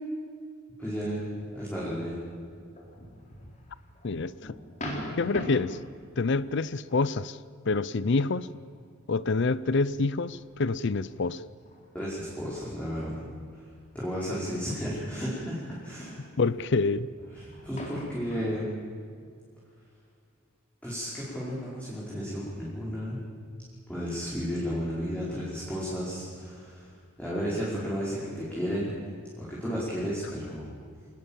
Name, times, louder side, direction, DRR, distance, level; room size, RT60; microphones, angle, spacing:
voice 1, 0.8-1.2 1.5-2.2 11.9-13.2 13.9-16.2 17.3-18.7 20.8-23.2 23.9-28.9 29.4-30.8, equal, 5° left, -7 dB, 4.9 m, -33 dB
sound 1, 1.3-7.0 7.4-7.7 8.2-8.8 9.4-15.1 15.3-18.6, equal, 35° left, 4.4 m, -43 dB
voice 2, 4.0-4.6 5.2-5.8 6.2-7.4 7.7-8.6 9.1-11.4 16.4-17.1, left 3 dB, 55° left, 18 dB, 0.6 m, -27 dB
26.5 x 19.5 x 7.3 m, 2.1 s
head